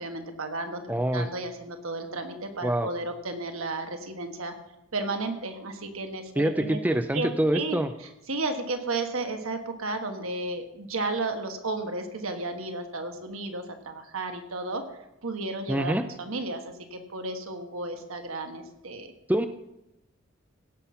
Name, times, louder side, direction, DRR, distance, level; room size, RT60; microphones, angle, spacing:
voice 1, 0.0-4.6 4.9-6.8 7.1-14.8 15.2-19.1, right 2 dB, 80° right, 6 dB, 1.4 m, -33 dB
voice 2, 0.9-1.3 2.6-2.9 6.4-7.9 15.7-16.1 19.3-19.5, right 1 dB, 10° right, 9 dB, 0.4 m, -25 dB
17.0 x 5.9 x 5.7 m, 0.88 s
head